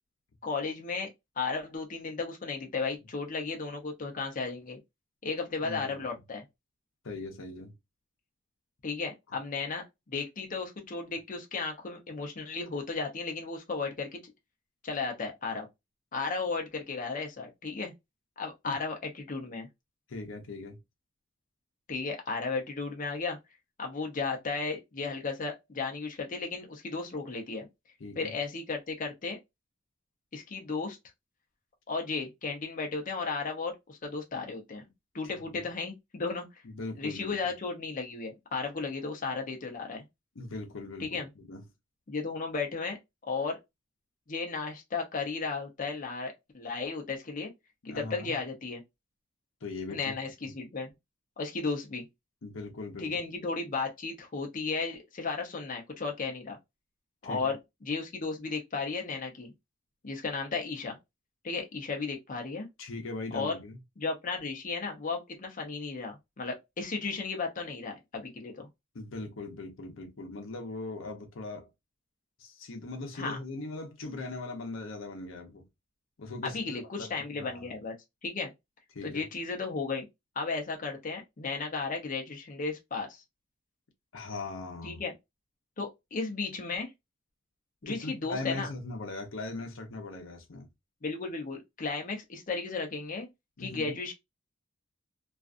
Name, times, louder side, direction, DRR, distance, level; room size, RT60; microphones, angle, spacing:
voice 1, 0.4-1.1 1.4-4.8 5.2-6.4 8.8-9.8 10.1-14.2 14.8-15.7 16.1-17.9 18.4-19.7 21.9-23.4 23.8-27.7 28.2-29.4 30.3-31.0 31.9-34.8 35.1-36.6 37.0-40.0 41.0-41.3 42.1-43.0 43.3-43.6 44.3-47.5 47.8-48.8 49.9-50.9 51.4-52.1 53.0-56.6 57.2-59.5 60.0-61.0 61.4-62.7 63.3-63.5 64.0-68.7 73.2-73.4 76.5-77.9 78.2-78.5 79.0-80.1 80.4-83.2 84.8-85.1 85.8-86.9 87.8-88.7 91.0-93.3 93.6-94.1, left 4 dB, 40° left, 0.6 m, -34 dB
voice 2, 5.6-6.2 7.0-7.7 18.7-18.8 20.1-20.8 28.0-28.3 35.5-35.6 36.6-37.5 40.4-41.6 47.8-48.4 49.6-50.1 52.4-53.2 57.2-57.5 62.8-63.8 68.9-71.7 72.4-75.6 76.2-77.8 78.9-79.2 84.1-85.0 87.8-90.7 93.6-94.0, left 2 dB, 80° left, 0.7 m, -40 dB
2.5 x 2.3 x 2.4 m
head